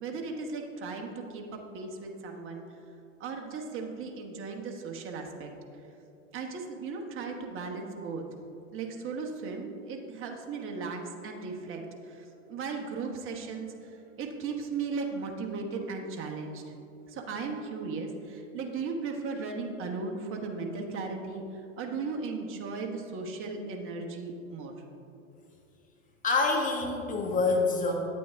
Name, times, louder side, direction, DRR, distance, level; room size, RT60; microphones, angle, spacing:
voice 1, 0.0-2.6 3.2-5.5 6.3-8.2 8.7-16.6 17.1-21.4 21.8-24.7, right 4 dB, 30° right, 2 dB, 1.2 m, -36 dB
voice 2, 26.2-27.9, left 3 dB, 20° left, 0 dB, 1.5 m, -26 dB
9.1 x 8.4 x 3.5 m, 2.8 s
hypercardioid pair, 110°, 39 cm